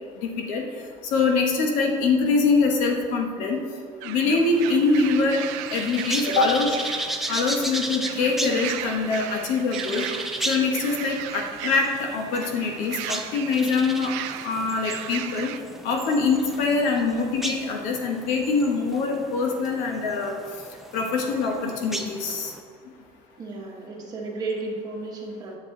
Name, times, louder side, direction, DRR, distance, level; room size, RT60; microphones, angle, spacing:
voice 1, 0.2-0.7 1.0-3.6 4.0-5.4 5.7-6.8 7.3-10.0 10.4-14.1 14.4-15.5 15.8-20.3 20.9-22.5, left 4 dB, 60° left, 2 dB, 1.3 m, -24 dB
sound 1, 4.0-15.6, right 12 dB, 75° right, 0.5 m, -36 dB
sound 2, 4.4-22.6, right 1 dB, ahead, 0.4 m, -35 dB
voice 2, 23.4-25.6, right 3 dB, 25° right, -1 dB, 1.1 m, -33 dB
10.5 x 7.1 x 3.9 m, 2.1 s
cardioid pair, 180°, 15 cm